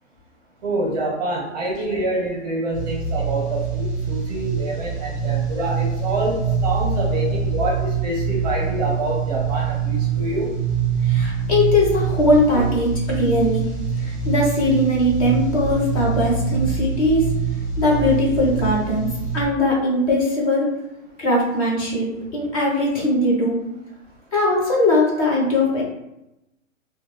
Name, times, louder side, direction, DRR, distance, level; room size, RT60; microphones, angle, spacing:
voice 1, 0.6-10.5, right 2 dB, 30° right, -2 dB, 0.7 m, -26 dB
sound 1, 2.7-19.4, right 6 dB, 5° right, 1.3 m, -24 dB
voice 2, 11.0-13.7 14.0-17.3 17.8-20.7 21.2-23.6 24.3-25.8, left 1 dB, 25° left, -4 dB, 0.8 m, -20 dB
4.2 x 2.3 x 3.1 m, 0.91 s
hypercardioid pair, 160°, 40 cm